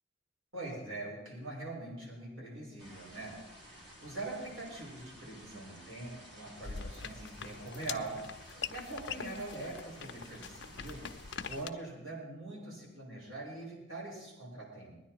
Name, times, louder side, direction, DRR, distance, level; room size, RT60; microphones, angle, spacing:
voice 1, 0.5-3.4 3.7-11.1 11.5-15.0, right 2 dB, 85° right, -4 dB, 6.4 m, -43 dB
sound 1, 2.8-11.6, equal, 60° right, 3.8 m, -54 dB
sound 2, 6.6-11.7, left 7 dB, 60° left, 0.6 m, -43 dB
20.5 x 10.0 x 4.6 m, 0.98 s
head